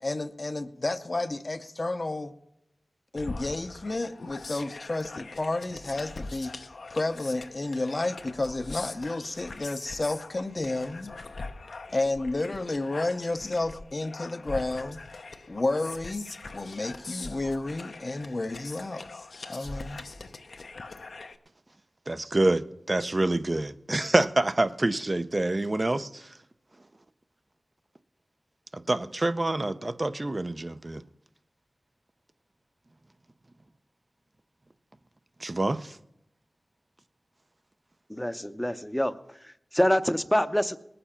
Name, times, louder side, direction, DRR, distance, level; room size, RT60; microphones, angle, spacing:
voice 1, 0.0-2.3 3.1-6.5 6.9-11.1 11.9-15.0 15.5-20.0, left 2 dB, 50° left, 0.7 m, -31 dB
sound 1, 3.2-21.4, left 3 dB, 80° left, 0.8 m, -42 dB
voice 2, 22.1-26.3 28.7-31.0 35.4-36.0, right 2 dB, 40° right, 0.6 m, -27 dB
voice 3, 38.1-40.8, equal, 10° left, 0.7 m, -26 dB
19.5 x 6.8 x 5.7 m
cardioid pair, 45°, 0 cm